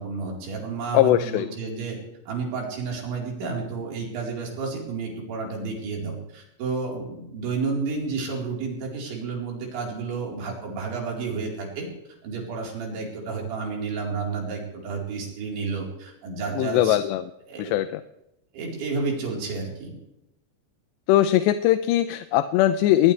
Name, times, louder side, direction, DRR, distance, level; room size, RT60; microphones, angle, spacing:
voice 1, 0.0-2.0 2.3-11.9 12.2-17.0 17.5-17.7 18.5-20.0, right 4 dB, 80° right, -2 dB, 6.6 m, -31 dB
voice 2, 0.9-1.5 16.6-17.2 17.6-18.0 21.1-23.1, left 13 dB, 80° left, 11 dB, 2.8 m, -20 dB
21.0 x 20.0 x 3.4 m, 0.86 s
omnidirectional pair, 5.2 m